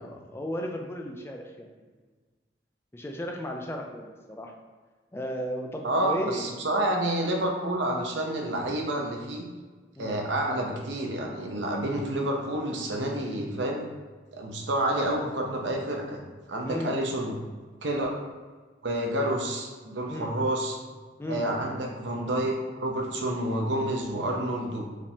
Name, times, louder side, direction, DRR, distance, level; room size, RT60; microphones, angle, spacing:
voice 1, 0.0-1.7 2.9-4.5 5.1-6.4 10.0-10.2 16.6-17.0 20.1-20.3 21.2-21.5, equal, 15° left, 2 dB, 0.4 m, -35 dB
voice 2, 5.8-9.4 10.0-13.8 14.3-16.2 16.5-17.3 17.8-18.2 18.8-20.8 21.3-24.9, right 1 dB, 85° right, 1 dB, 0.8 m, -29 dB
4.9 x 3.4 x 2.8 m, 1.4 s
head